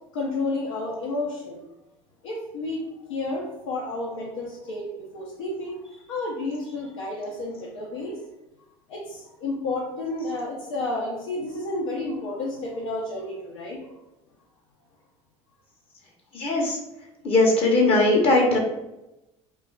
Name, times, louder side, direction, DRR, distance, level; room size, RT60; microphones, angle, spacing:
voice 1, 0.1-1.6 2.2-8.2 8.9-13.9, left 2 dB, 85° left, -3 dB, 0.6 m, -31 dB
voice 2, 16.3-16.8 17.2-18.6, left 2 dB, 35° left, -1 dB, 0.7 m, -19 dB
2.3 x 2.1 x 3.7 m, 0.96 s
hypercardioid pair, 80°, 16 cm